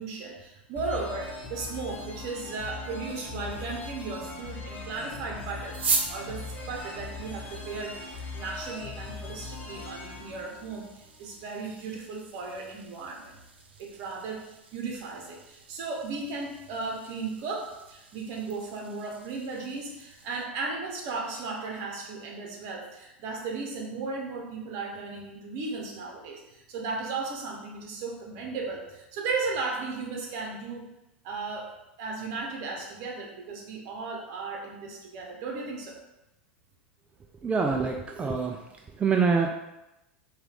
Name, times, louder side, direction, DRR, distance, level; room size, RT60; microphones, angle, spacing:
voice 1, 0.0-13.4 13.8-30.8 31.2-36.0, right 4 dB, 55° right, 0 dB, 1.0 m, -36 dB
sound 1, 0.8-11.4, left 3 dB, 30° left, 1.0 m, -40 dB
sound 2, 5.7-20.4, right 4 dB, 80° right, 0.6 m, -39 dB
voice 2, 37.4-38.6 39.0-39.5, right 5 dB, 20° right, 2 dB, 0.4 m, -25 dB
4.5 x 2.5 x 3.4 m, 0.93 s
hypercardioid pair, 90°, 6 cm